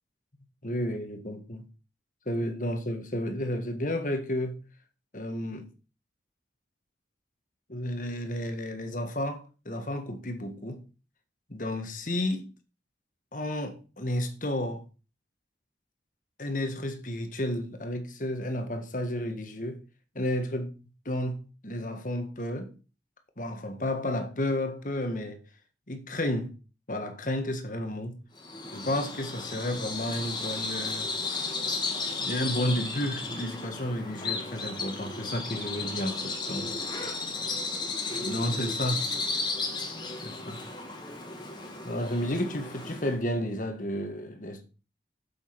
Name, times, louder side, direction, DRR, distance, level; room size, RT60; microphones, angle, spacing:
voice 1, 0.6-1.6 2.2-4.6 5.1-5.7 7.7-10.8 11.5-12.5 13.3-14.8 16.4-19.8 20.1-20.7 21.0-22.7 23.4-25.4 25.9-26.5 26.9-28.2 28.7-31.1 32.2-36.7 38.1-39.0 40.2-40.6 41.8-44.6, left 1 dB, 45° left, 1.7 m, -32 dB
Bird vocalization bird call bird song, 28.4-43.2, left 3 dB, 25° left, 2.0 m, -34 dB
7.6 x 7.4 x 6.1 m
head